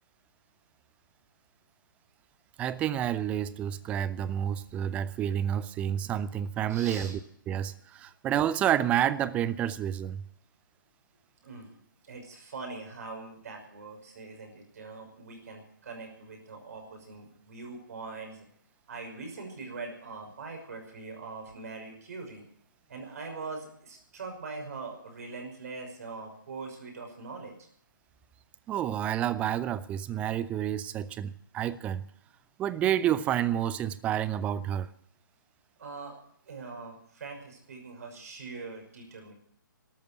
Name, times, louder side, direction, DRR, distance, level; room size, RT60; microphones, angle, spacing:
voice 1, 2.6-7.2 7.5-10.2 28.7-32.0 32.6-34.9, right 10 dB, 10° right, 17 dB, 0.5 m, -29 dB
voice 2, 6.7-7.1 11.4-18.5 18.9-22.4 22.9-27.5 35.8-36.2 36.5-39.3, right 4 dB, 45° right, 3 dB, 5.9 m, -42 dB
13.0 x 12.0 x 7.9 m, 0.67 s
figure-of-eight pair, 135°, 11 cm